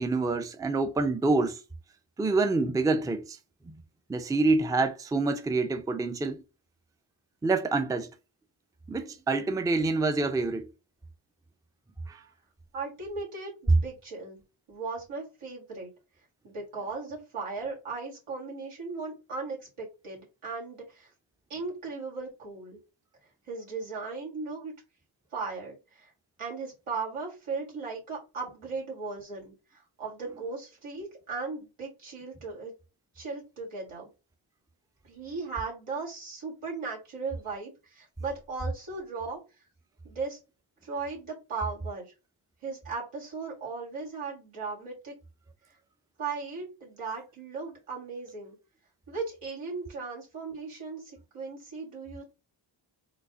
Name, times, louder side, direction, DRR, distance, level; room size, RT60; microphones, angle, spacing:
voice 1, 0.0-1.6 2.2-3.4 3.6-3.7 4.1-6.4 7.4-8.1 8.9-10.7 12.1-12.2, right 3 dB, 10° right, 0.4 m, -27 dB
voice 2, 12.7-14.4 14.7-15.9 16.4-21.1 21.5-22.8 23.5-24.7 25.3-26.1 26.4-29.5 30.0-32.7 33.2-34.1 35.1-39.4 40.0-40.4 40.8-42.1 42.6-45.1 46.2-48.6 49.1-52.3, right 4 dB, 85° right, 1.9 m, -37 dB
4.0 x 2.1 x 3.5 m
cardioid pair, 55°, 50 cm